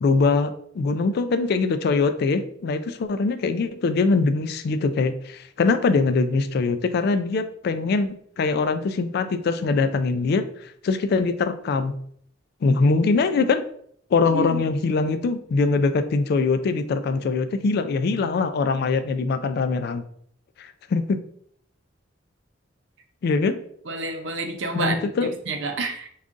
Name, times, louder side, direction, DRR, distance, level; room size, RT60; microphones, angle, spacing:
voice 1, 0.0-10.5 10.8-11.9 12.6-13.7 14.1-20.0 20.6-21.2 23.2-23.6 24.7-25.3, left 4 dB, 55° left, 11 dB, 0.3 m, -22 dB
voice 2, 14.3-14.6 23.9-26.1, right 3 dB, 70° right, 5 dB, 0.6 m, -29 dB
3.7 x 2.4 x 3.6 m, 0.65 s
head